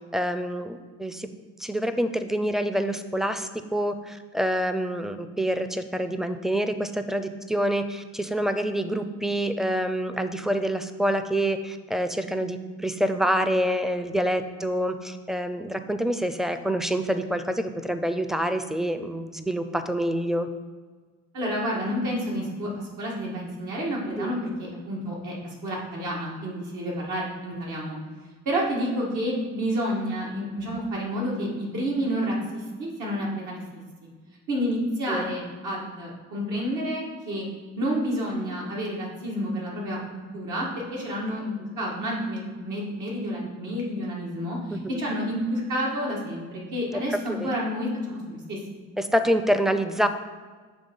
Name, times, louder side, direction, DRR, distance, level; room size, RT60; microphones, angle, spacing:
voice 1, 0.1-1.3 1.6-20.5 24.2-24.3 35.1-35.3 44.7-44.8 47.3-47.5 49.0-50.1, equal, ahead, 10 dB, 0.4 m, -27 dB
voice 2, 21.3-28.0 28.5-33.6 34.5-37.5 37.8-48.6, equal, 80° right, -3 dB, 2.0 m, -29 dB
7.0 x 3.5 x 5.4 m, 1.5 s
cardioid pair, 90°, 30 cm